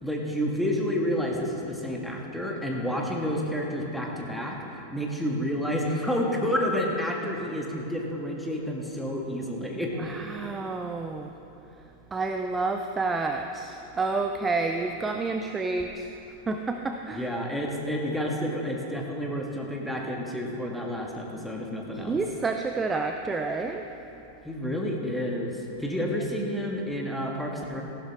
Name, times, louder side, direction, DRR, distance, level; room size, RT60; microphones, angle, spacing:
voice 1, 0.0-9.9 17.1-22.2 24.4-27.8, equal, ahead, -1 dB, 1.6 m, -30 dB
voice 2, 10.0-11.4 12.1-16.1 16.4-17.3 21.9-23.9 26.0-26.2, right 3 dB, 15° right, 5 dB, 0.5 m, -29 dB
15.0 x 11.5 x 3.6 m, 2.9 s
figure-of-eight pair, 90°, 0 cm